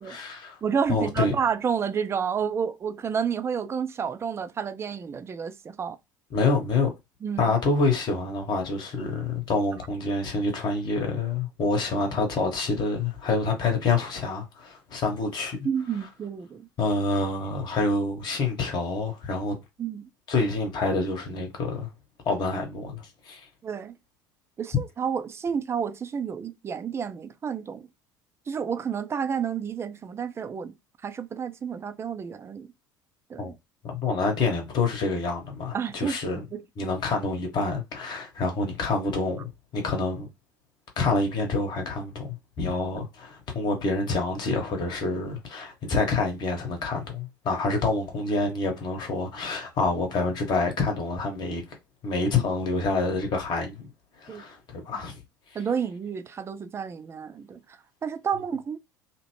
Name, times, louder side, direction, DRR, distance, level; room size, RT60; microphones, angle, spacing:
voice 1, 0.0-0.6 0.9-1.3 6.3-6.9 7.4-15.6 16.8-19.6 20.3-21.9 22.2-23.5 33.4-33.5 33.8-36.5 36.8-40.3 41.0-51.6 52.0-53.9 54.2-55.2, left 3 dB, 45° left, 1.0 m, -27 dB
voice 2, 0.6-6.0 7.2-7.6 15.6-16.7 19.8-20.1 23.6-23.9 24.6-27.9 28.5-30.8 31.0-32.7 33.3-33.5 35.7-36.6 54.3-54.4 54.9-55.0 55.5-58.8, right 7 dB, 25° right, 0.4 m, -30 dB
2.8 x 2.0 x 3.0 m
figure-of-eight pair, 65°, 11 cm